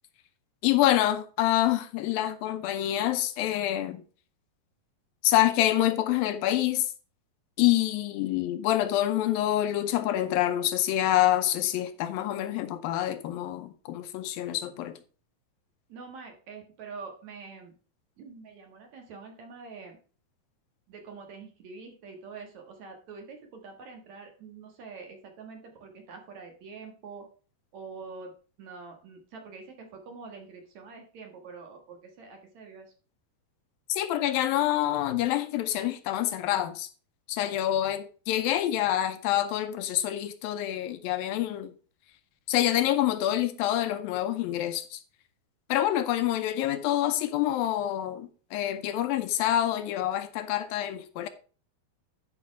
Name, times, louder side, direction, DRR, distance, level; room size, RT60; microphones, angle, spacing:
voice 1, 0.6-4.0 5.2-6.9 7.6-15.0 33.9-36.9 37.3-41.7 42.5-45.0 45.7-51.3, left 13 dB, 80° left, 2.5 m, -26 dB
voice 2, 15.9-17.7 18.2-20.0 20.9-27.3 27.7-28.3 28.6-32.9, right 4 dB, 55° right, 2.6 m, -45 dB
11.0 x 5.4 x 4.6 m
omnidirectional pair, 4.2 m